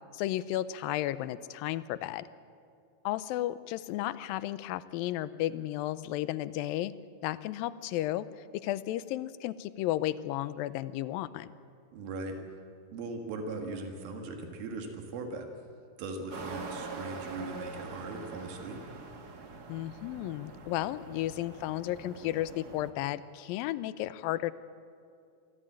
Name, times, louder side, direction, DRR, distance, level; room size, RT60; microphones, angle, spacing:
voice 1, 0.1-2.3 3.1-6.9 7.2-8.3 8.5-11.5 19.7-24.5, left 14 dB, 85° left, 15 dB, 2.4 m, -33 dB
voice 2, 11.9-12.4 12.9-15.5 16.0-18.8, right 3 dB, 90° right, 4 dB, 3.5 m, -39 dB
sound 1, 16.3-22.9, right 4 dB, 50° right, 1.1 m, -44 dB
24.0 x 15.5 x 8.8 m, 2.4 s
omnidirectional pair, 4.1 m